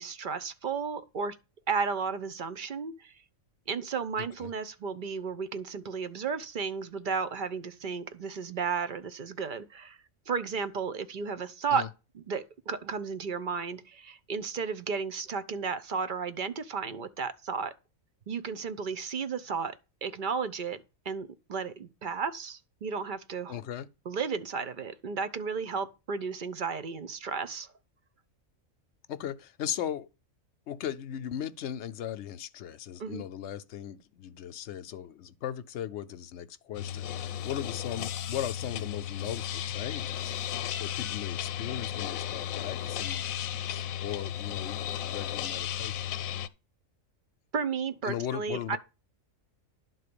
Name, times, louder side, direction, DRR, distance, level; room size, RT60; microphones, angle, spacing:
voice 1, 0.0-1.4 1.7-3.1 3.7-10.0 10.3-11.8 12.1-17.7 18.3-19.8 20.0-20.8 21.0-23.6 24.1-27.7 33.0-33.2 47.5-48.8, right 5 dB, 50° right, 0.7 m, -33 dB
voice 2, 23.5-23.9 29.1-30.1 30.7-46.0 48.0-48.8, left 10 dB, 65° left, 0.9 m, -38 dB
sound 1, 36.7-46.5, left 10 dB, 90° left, 1.1 m, -34 dB
11.0 x 4.1 x 6.8 m
omnidirectional pair, 1.4 m